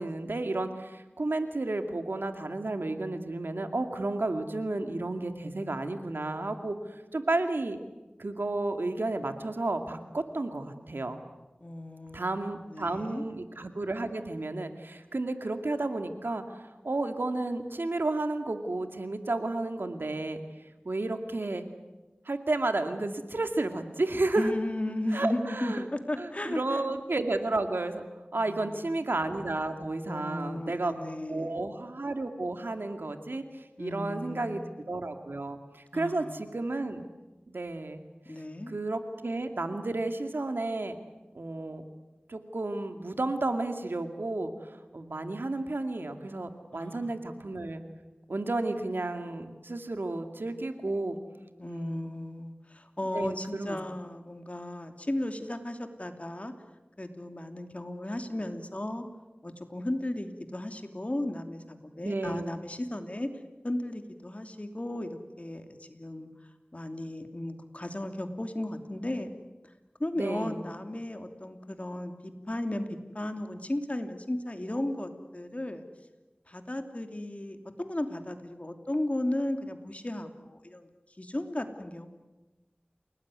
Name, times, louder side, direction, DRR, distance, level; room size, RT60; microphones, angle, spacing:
voice 1, 0.0-7.8 8.2-11.2 12.1-20.4 20.8-21.6 22.3-24.5 25.1-25.8 26.2-28.0 28.3-30.9 31.3-34.6 34.9-37.1 37.5-38.0 38.7-41.0 41.3-41.8 42.3-44.5 44.9-47.8 48.3-51.2 51.6-52.1 53.1-53.8 62.0-62.5 70.2-70.6, right 2 dB, 90° right, 7 dB, 2.3 m, -32 dB
voice 2, 11.6-13.2 24.4-26.9 28.3-29.0 30.0-31.7 33.8-34.8 35.9-36.5 38.2-38.7 46.7-47.1 51.6-56.5 57.0-59.1 59.4-63.3 63.6-66.3 66.7-69.3 70.0-72.9 73.1-75.8 76.5-80.9 81.2-82.1, left 1 dB, 40° left, 6 dB, 2.9 m, -35 dB
29.0 x 19.0 x 9.5 m, 1.1 s
wide cardioid pair, 45°, 4 cm